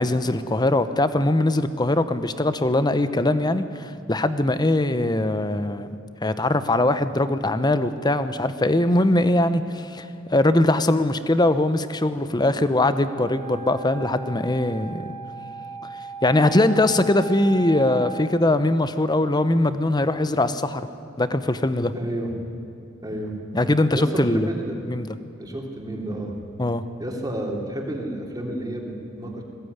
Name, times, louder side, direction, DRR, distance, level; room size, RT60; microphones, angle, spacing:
voice 1, 0.0-5.9 6.2-10.0 10.3-15.1 16.2-20.9 21.2-21.9 23.5-24.5 24.9-25.1 26.6-26.8, left 1 dB, 20° left, 12 dB, 0.9 m, -21 dB
Wind instrument woodwind instrument, 12.9-18.2, right 5 dB, 35° right, 2.4 m, -37 dB
voice 2, 21.9-22.3 23.0-23.3 23.9-24.8 25.4-26.4 27.0-29.4, right 1 dB, 20° right, 0 dB, 3.0 m, -31 dB
21.0 x 16.5 x 9.6 m, 2.8 s
head